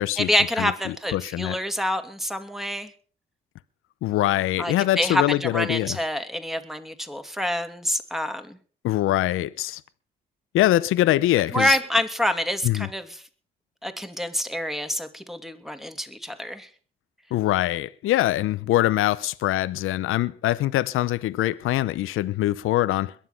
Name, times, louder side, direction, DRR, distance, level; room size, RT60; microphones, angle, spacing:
voice 1, 0.2-2.9 4.6-8.6 11.5-13.2 13.8-16.7, equal, ahead, 2.6 m, -27 dB
voice 2, 1.1-1.6 4.0-6.0 8.8-9.8 10.5-11.8 12.6-12.9 17.3-23.1, left 15 dB, 80° left, 0.7 m, -23 dB
21.5 x 7.5 x 5.9 m
supercardioid pair, 55°, 21 cm